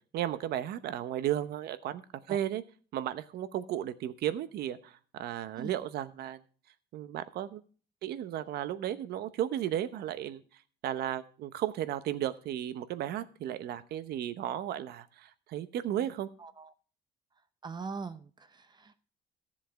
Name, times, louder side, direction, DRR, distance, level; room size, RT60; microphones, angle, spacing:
voice 1, 0.1-2.6 2.9-6.4 6.9-7.6 8.0-10.4 10.8-16.3, right 11 dB, 70° right, 13 dB, 0.9 m, -34 dB
voice 2, 17.6-19.0, right 4 dB, 25° right, 11 dB, 0.7 m, -41 dB
13.5 x 7.5 x 4.6 m, 0.40 s
cardioid pair, 110°, 17 cm